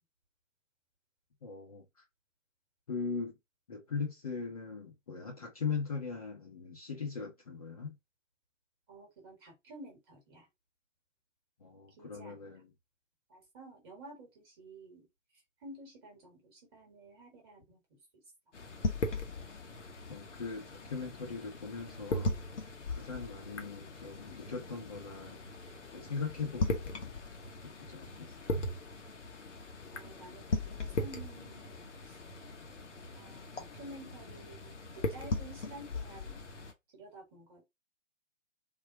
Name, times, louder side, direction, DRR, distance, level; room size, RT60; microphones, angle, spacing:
voice 1, 1.4-1.8 2.9-3.3 3.7-7.9 11.6-12.7 20.1-22.3 22.9-25.4 25.9-27.2 27.8-28.6, left 5 dB, 30° left, 0.6 m, -40 dB
voice 2, 8.9-10.5 12.0-12.5 13.3-17.8 29.9-32.2 33.1-36.5 36.9-37.6, right 2 dB, 20° right, 1.2 m, -52 dB
sound 1, 18.5-36.7, left 2 dB, 65° left, 0.9 m, -39 dB
3.6 x 2.1 x 2.7 m
figure-of-eight pair, 135°, 39 cm